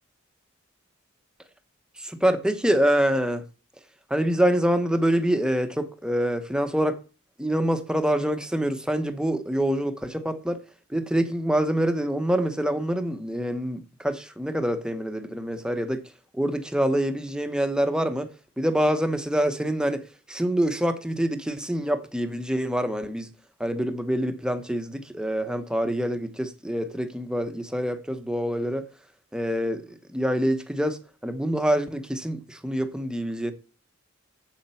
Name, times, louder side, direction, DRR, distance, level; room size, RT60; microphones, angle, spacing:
voice 1, 2.0-3.4 4.1-7.0 7.4-10.6 10.9-16.0 16.3-18.3 18.6-20.0 20.3-23.3 23.6-28.8 29.3-31.0 31.2-33.5, equal, 5° right, 1.0 m, -25 dB
8.0 x 7.4 x 5.6 m
head